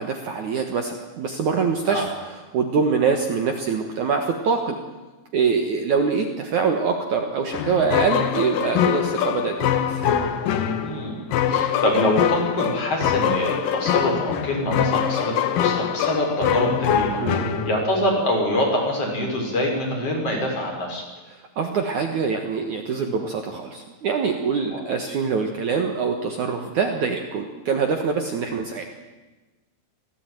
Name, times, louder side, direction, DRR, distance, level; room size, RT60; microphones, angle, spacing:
voice 1, 0.0-4.8 5.3-10.0 17.2-17.5 21.6-28.8, right 5 dB, 90° right, 5 dB, 1.6 m, -24 dB
sound 1, 7.5-18.1, left 9 dB, 85° left, 1.9 m, -23 dB
voice 2, 10.8-11.2 11.5-17.2 17.7-21.0 24.7-24.8, left 1 dB, 30° left, 1 dB, 5.7 m, -25 dB
25.5 x 16.5 x 9.2 m, 1.2 s
omnidirectional pair, 5.9 m